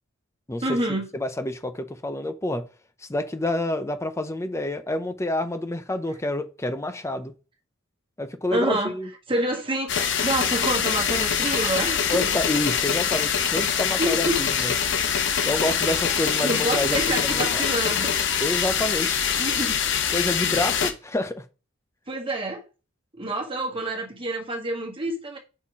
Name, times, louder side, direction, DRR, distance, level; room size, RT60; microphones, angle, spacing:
voice 1, 0.6-1.1 8.5-8.9 9.3-12.3 14.0-14.5 16.4-18.1 19.4-19.8 22.1-22.6 23.1-25.4, right 1 dB, 25° right, 1.6 m, -27 dB
voice 2, 1.1-2.6 3.0-7.3 8.2-9.1 12.1-14.7 15.4-17.7 18.4-19.2 20.1-21.4, left 1 dB, 15° left, 0.5 m, -28 dB
sound 1, 9.9-20.9, left 7 dB, 60° left, 1.0 m, -24 dB
5.6 x 4.3 x 4.7 m
head